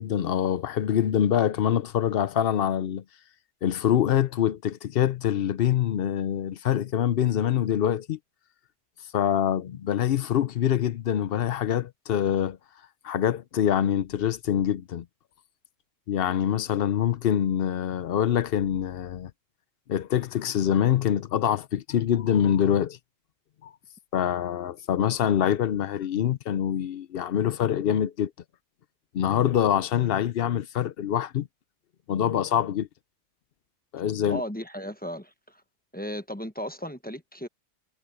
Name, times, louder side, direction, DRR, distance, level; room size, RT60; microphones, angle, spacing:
voice 1, 0.0-3.0 3.6-8.2 9.1-12.6 13.0-15.0 16.1-19.3 19.9-23.0 23.6-23.7 24.1-28.3 29.1-31.5 32.1-32.9 33.9-34.4, left 10 dB, 60° left, 0.8 m, -25 dB
voice 2, 34.3-35.6 35.9-37.5, equal, 10° left, 1.0 m, -35 dB
omnidirectional pair, 1.3 m